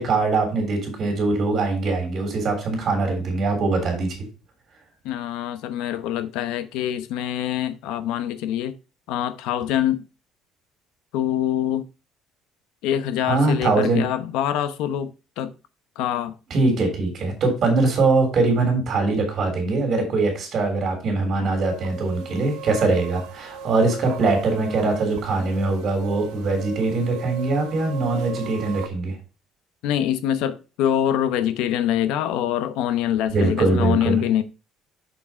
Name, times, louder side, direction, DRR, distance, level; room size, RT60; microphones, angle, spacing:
voice 1, 0.0-4.2 13.3-14.0 16.5-29.1 33.3-34.2, right 3 dB, 35° right, 3.5 m, -22 dB
voice 2, 5.0-8.7 9.1-10.0 11.1-11.8 12.8-15.5 16.0-16.4 29.8-34.4, left 10 dB, 80° left, 0.8 m, -24 dB
sound 1, 21.6-28.9, right 5 dB, 85° right, 1.3 m, -37 dB
6.7 x 6.2 x 4.4 m
cardioid pair, 175°, 0 cm